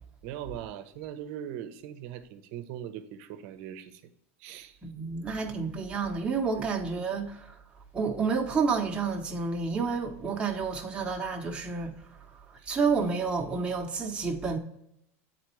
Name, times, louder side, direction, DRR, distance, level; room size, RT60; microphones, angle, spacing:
voice 1, 0.2-4.0 4.4-4.8 6.5-6.7 12.6-12.8, right 10 dB, 60° right, 0.7 m, -40 dB
voice 2, 4.8-7.6 7.9-14.6, right 5 dB, 15° right, 0.9 m, -30 dB
8.1 x 4.2 x 3.1 m
supercardioid pair, 120°, 8 cm